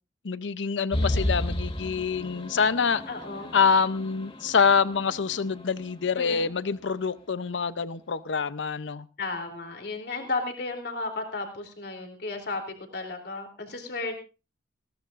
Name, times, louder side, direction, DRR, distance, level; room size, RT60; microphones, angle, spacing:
voice 1, 0.2-3.0 3.5-9.1, left 5 dB, 90° left, 15 dB, 0.6 m, -26 dB
sound 1, 0.9-6.5, left 1 dB, 30° left, 1.7 m, -33 dB
voice 2, 3.1-3.5 6.1-6.5 9.2-14.2, left 3 dB, 65° left, 3 dB, 3.3 m, -34 dB
20.5 x 17.5 x 2.5 m, 0.33 s
head